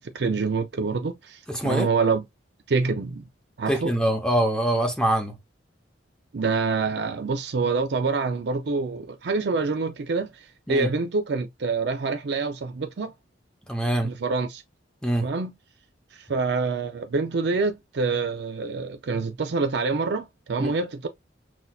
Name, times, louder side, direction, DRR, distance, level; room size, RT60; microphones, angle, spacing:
voice 1, 0.0-2.2 2.7-3.3 3.6-3.9 6.3-13.1 14.0-14.6 15.2-15.5 16.1-21.1, right 4 dB, 60° right, 0.5 m, -26 dB
voice 2, 1.5-1.9 3.7-5.4 10.7-10.9 13.7-14.1 15.0-15.2 20.6-20.7, right 1 dB, 5° left, 0.7 m, -24 dB
6.0 x 2.6 x 2.3 m
head